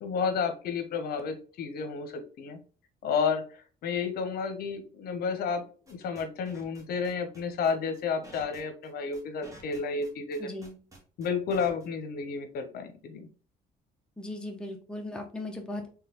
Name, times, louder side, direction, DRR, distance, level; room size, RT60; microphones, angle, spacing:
voice 1, 0.0-2.6 3.0-10.5 11.2-13.3, left 5 dB, 65° left, 7 dB, 0.9 m, -31 dB
sound 1, 5.9-11.9, right 2 dB, 20° right, 1.4 m, -51 dB
voice 2, 10.4-10.7 14.2-15.9, left 1 dB, 5° left, 2 dB, 0.7 m, -37 dB
3.7 x 3.5 x 3.0 m, 0.38 s
cardioid pair, 110°, 17 cm